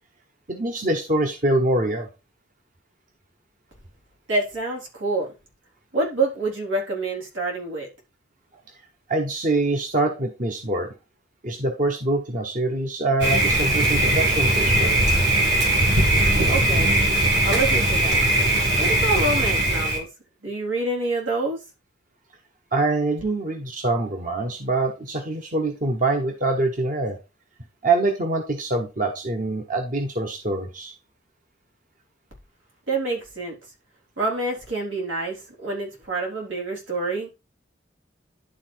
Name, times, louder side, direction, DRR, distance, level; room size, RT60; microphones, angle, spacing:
voice 1, 0.5-2.1 9.1-10.9 11.4-15.0 22.7-27.2 27.8-30.9, right 2 dB, 40° right, 1.2 m, -24 dB
voice 2, 4.3-5.3 5.9-7.9 16.5-16.9 17.4-18.2 18.8-20.1 20.4-21.6 32.9-33.6 34.2-37.3, right 2 dB, 85° right, 3.9 m, -27 dB
Thunder, 13.2-20.0, right 1 dB, 60° right, 2.8 m, -20 dB
11.5 x 3.9 x 4.5 m
head